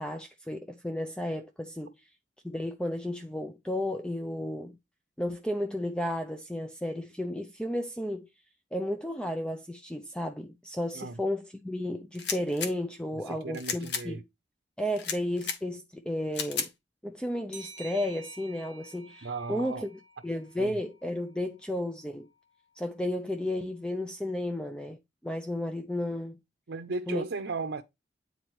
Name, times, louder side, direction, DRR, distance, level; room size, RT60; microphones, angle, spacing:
voice 1, 0.0-2.0 2.4-4.8 5.2-8.3 8.7-14.2 14.8-16.7 17.0-19.9 20.2-22.3 22.8-25.0 25.2-26.4 27.1-27.3, left 1 dB, 5° left, 0.5 m, -33 dB
sound 1, 12.1-12.7 13.5-14.0 15.0-15.6 16.3-16.7, left 6 dB, 70° left, 1.2 m, -33 dB
voice 2, 13.3-14.2 19.2-19.9 20.6-20.8 26.7-27.8, right 3 dB, 85° right, 0.6 m, -36 dB
sound 2, 17.5-20.9, right 3 dB, 35° left, 1.7 m, -49 dB
9.5 x 4.0 x 3.1 m
head